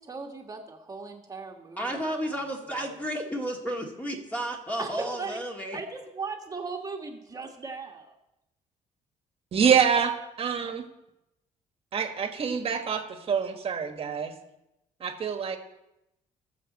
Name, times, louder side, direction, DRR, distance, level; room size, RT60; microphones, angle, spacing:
voice 1, 0.0-2.0 2.3-2.4 2.6-3.0 4.8-5.4 5.7-8.1, right 4 dB, 25° right, 2 dB, 1.6 m, -38 dB
voice 2, 1.8-5.8, right 1 dB, 10° left, 0 dB, 2.1 m, -32 dB
voice 3, 9.5-10.1 10.4-10.9 11.9-14.3 15.0-15.6, right 7 dB, 45° right, 5 dB, 1.5 m, -26 dB
20.0 x 7.2 x 4.2 m, 0.88 s
cardioid pair, 120°, 14 cm